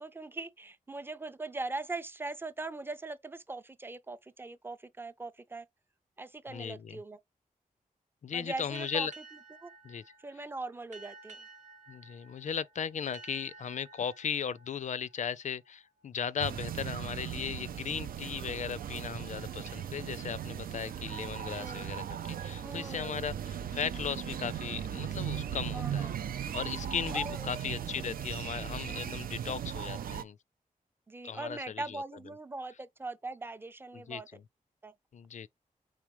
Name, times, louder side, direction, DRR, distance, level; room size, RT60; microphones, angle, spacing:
voice 1, 0.0-5.7 6.2-7.2 8.3-9.1 9.6-9.7 10.2-11.4 21.6-21.9 22.6-23.3 25.7-26.2 27.1-27.5 28.0-28.1 31.1-34.3 34.8-34.9, right 3 dB, 15° right, 0.4 m, -41 dB
voice 2, 6.5-7.0 8.2-9.1 9.8-10.0 11.9-26.1 26.5-30.4 31.2-32.0 33.9-34.4 35.1-35.5, left 7 dB, 55° left, 0.4 m, -37 dB
sound 1, 8.7-16.0, right 4 dB, 55° right, 0.8 m, -54 dB
sound 2, 16.4-30.2, right 9 dB, 85° right, 0.4 m, -38 dB
4.9 x 3.7 x 3.0 m
wide cardioid pair, 150°, 15 cm